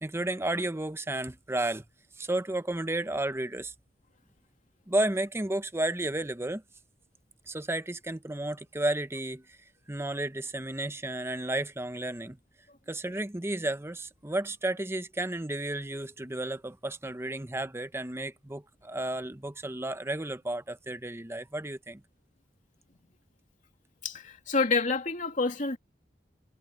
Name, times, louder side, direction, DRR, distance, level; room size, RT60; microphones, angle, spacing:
voice 1, 0.0-1.8 2.2-3.7 4.9-6.6 7.5-9.6 9.9-12.4 12.9-22.0, right 1 dB, 15° right, 0.8 m, -32 dB
voice 2, 24.0-25.8, left 4 dB, 45° left, 2.7 m, -28 dB
head